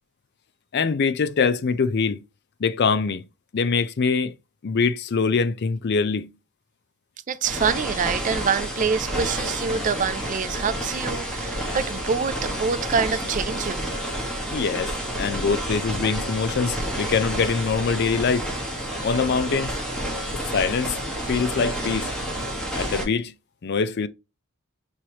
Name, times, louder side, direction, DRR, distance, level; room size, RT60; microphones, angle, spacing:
voice 1, 0.7-2.2 2.6-3.2 3.5-4.3 4.6-6.3 14.5-18.5 19.0-19.8 20.5-21.0 21.3-22.1 22.8-23.3 23.6-24.1, left 5 dB, 50° left, 0.4 m, -23 dB
voice 2, 7.3-13.9, right 6 dB, 35° right, 0.3 m, -26 dB
sound 1, 7.4-23.0, equal, 5° left, 1.3 m, -29 dB
5.5 x 3.1 x 2.8 m
head